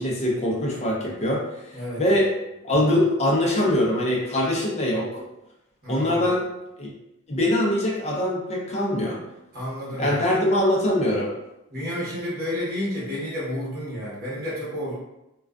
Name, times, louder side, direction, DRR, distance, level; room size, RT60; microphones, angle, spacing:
voice 1, 0.0-1.4 2.0-2.3 2.6-5.2 5.9-6.5 6.8-6.9 7.3-9.2 10.0-11.3, left 1 dB, 30° left, -3 dB, 0.5 m, -23 dB
voice 2, 1.7-2.3 2.7-2.8 5.8-6.4 9.5-10.5 11.7-14.9, left 1 dB, 45° right, -7 dB, 1.0 m, -31 dB
2.4 x 2.3 x 2.3 m, 0.92 s
head